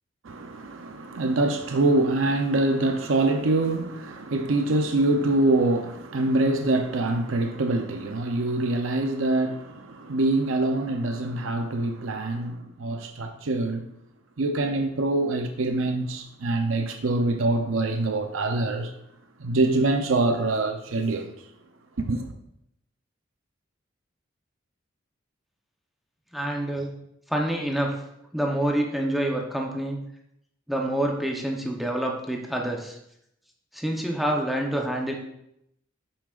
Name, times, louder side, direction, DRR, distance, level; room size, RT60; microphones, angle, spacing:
voice 1, 0.2-13.9 14.4-18.9 19.4-21.3 22.0-22.3, right 2 dB, 90° right, 0.7 m, -25 dB
voice 2, 26.3-26.9 27.3-28.0 28.3-30.0 30.7-33.0 33.7-35.1, right 1 dB, ahead, 0.8 m, -27 dB
9.8 x 7.3 x 2.5 m
head